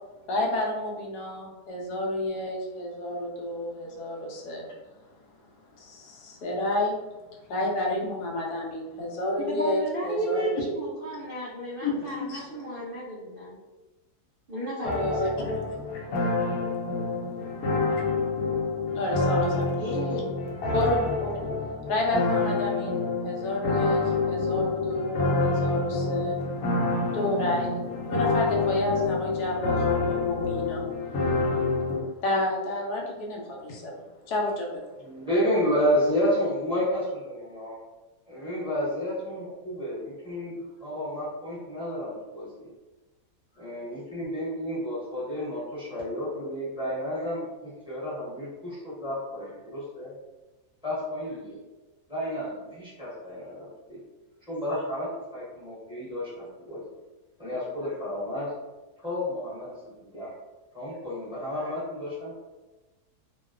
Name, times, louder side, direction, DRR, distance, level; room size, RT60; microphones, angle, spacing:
voice 1, 0.3-4.7 5.2-5.3 5.7-6.9 7.3-10.6 11.8-12.4 14.8-15.6 16.0-16.3 18.9-19.8 20.7-21.5 21.9-24.0 24.3-27.7 28.1-30.8 31.2-31.4 32.2-33.9 34.3-34.8, left 1 dB, 85° left, -1 dB, 1.2 m, -30 dB
voice 2, 9.5-13.6 14.5-15.6 19.8-20.3, right 1 dB, 65° right, -8 dB, 0.5 m, -33 dB
sound 1, 14.8-32.0, left 3 dB, 65° left, 1.0 m, -27 dB
voice 3, 35.0-37.8 38.3-42.7 43.5-50.1 50.8-51.6 52.1-54.0 54.5-56.8 57.4-58.5 59.0-60.3 60.7-62.3, equal, 5° right, -10 dB, 0.7 m, -31 dB
2.9 x 2.1 x 2.3 m, 1.1 s
omnidirectional pair, 1.7 m